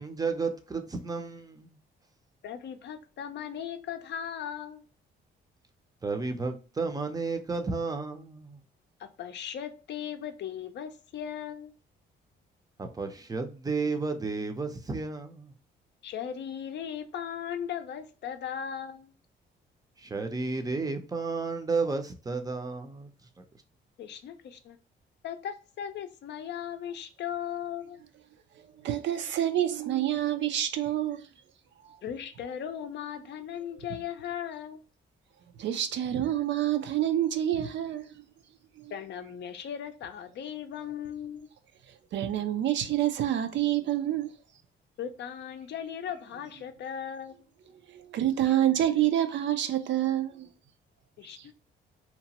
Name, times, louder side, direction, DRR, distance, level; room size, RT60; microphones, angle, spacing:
voice 1, 0.0-1.8 6.0-8.6 12.8-15.5 20.0-23.1 23.4-23.5, right 4 dB, 20° right, 0.5 m, -32 dB
voice 2, 2.4-4.8 9.0-11.7 16.0-19.1 24.0-24.8 25.2-28.0 32.0-34.8 38.9-41.5 45.0-47.5 48.4-48.5 51.2-51.5, left 9 dB, 60° left, 0.5 m, -37 dB
voice 3, 28.8-31.2 35.6-38.1 38.8-38.9 42.1-44.3 47.9-50.5 51.4-51.5, right 12 dB, 70° right, 0.5 m, -27 dB
2.9 x 2.1 x 2.8 m
cardioid pair, 90°, 20 cm